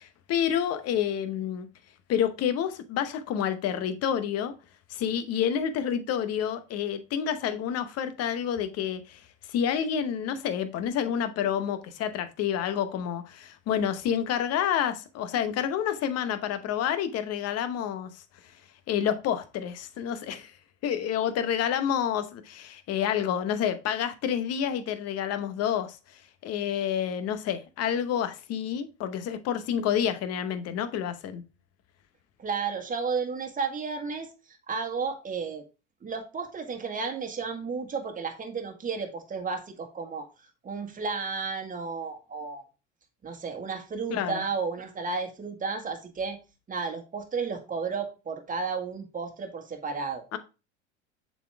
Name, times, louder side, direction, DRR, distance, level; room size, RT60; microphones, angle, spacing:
voice 1, 0.0-1.7 2.1-4.5 4.9-9.2 9.5-18.2 18.9-20.5 20.8-31.4 44.1-44.4 50.3-50.4, left 9 dB, 45° left, 0.9 m, -29 dB
voice 2, 32.4-35.6 36.0-40.3 40.6-42.6 43.2-46.4 46.7-50.2, right 5 dB, 25° right, 1.6 m, -33 dB
7.0 x 4.3 x 3.4 m
hypercardioid pair, 85°, 35 cm